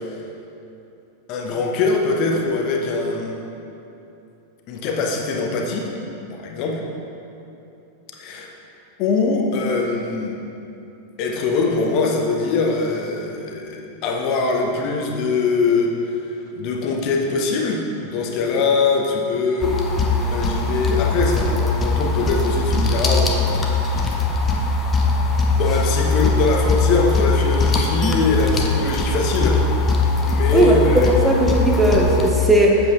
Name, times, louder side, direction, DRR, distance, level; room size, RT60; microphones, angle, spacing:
voice 1, 1.3-3.4 4.7-6.0 6.3-6.8 8.2-8.5 9.0-10.4 11.2-24.2 25.5-29.6 30.2-31.1, left 3 dB, 40° left, 1 dB, 1.1 m, -22 dB
sound 1, 19.6-32.3, left 3 dB, 20° left, 0.9 m, -20 dB
voice 2, 30.5-32.8, right 1 dB, 5° right, -1 dB, 0.9 m, -17 dB
7.9 x 7.7 x 4.4 m, 2.8 s
figure-of-eight pair, 90°, 0 cm